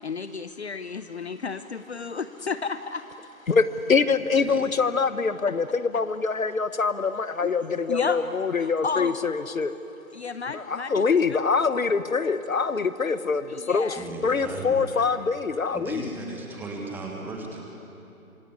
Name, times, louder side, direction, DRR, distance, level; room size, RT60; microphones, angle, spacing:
voice 1, 0.0-3.1 7.4-8.2 8.6-9.2 10.1-11.0 13.5-14.1, left 5 dB, 50° left, 11 dB, 0.9 m, -32 dB
voice 2, 3.5-9.7 10.5-14.0 14.2-16.1, left 5 dB, 70° left, 13 dB, 1.2 m, -24 dB
voice 3, 4.3-4.7 14.0-15.0 15.7-17.6, right 2 dB, 5° right, 0 dB, 1.7 m, -36 dB
26.5 x 23.0 x 9.6 m, 3.0 s
figure-of-eight pair, 145°, 43 cm